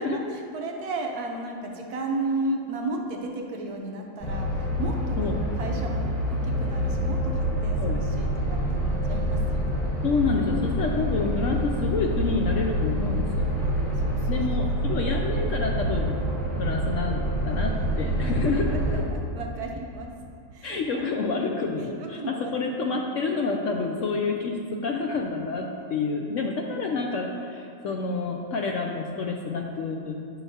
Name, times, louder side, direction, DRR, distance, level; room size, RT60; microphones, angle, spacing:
voice 1, 0.0-9.9 14.0-14.5 14.9-15.0 18.2-20.1 20.5-21.0 22.0-23.0, right 2 dB, 65° right, 1 dB, 1.2 m, -34 dB
sound 1, 4.2-19.0, equal, ahead, 1.7 m, -27 dB
voice 2, 10.0-13.5 14.3-16.2 16.5-18.7 20.6-30.2, left 4 dB, 75° left, 1 dB, 0.7 m, -28 dB
12.5 x 5.9 x 2.8 m, 2.5 s
omnidirectional pair, 1.9 m